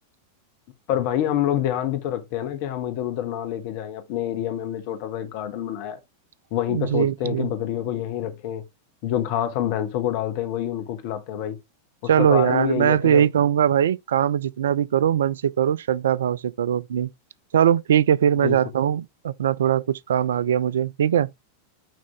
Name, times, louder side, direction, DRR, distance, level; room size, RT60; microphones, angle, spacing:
voice 1, 0.9-6.0 6.5-8.6 9.0-11.6 12.2-13.3 18.4-18.6, left 11 dB, 45° left, 1.5 m, -27 dB
voice 2, 6.7-7.5 12.0-17.1 17.5-21.3, right 9 dB, 65° right, 0.3 m, -21 dB
9.3 x 3.7 x 3.5 m
figure-of-eight pair, 90°, 0 cm